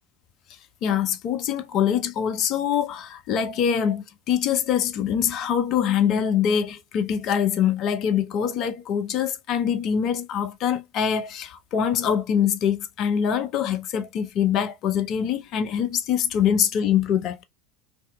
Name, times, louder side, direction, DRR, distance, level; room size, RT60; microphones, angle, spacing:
voice 1, 0.8-17.4, left 8 dB, 45° left, 0.5 m, -24 dB
2.6 x 2.3 x 2.2 m
figure-of-eight pair, 80°, 0 cm